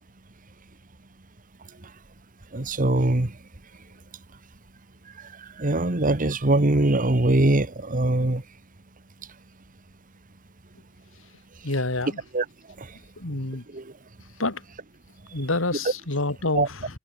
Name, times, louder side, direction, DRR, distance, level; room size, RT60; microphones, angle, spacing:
voice 1, 2.5-3.3 5.4-8.4 12.3-12.4 12.8-12.9 13.7-13.9 16.5-16.7, right 2 dB, 40° right, 1.4 m, -22 dB
voice 2, 11.6-12.2 13.2-13.6 14.4-14.6 15.3-16.9, left 2 dB, 70° left, 2.7 m, -27 dB
head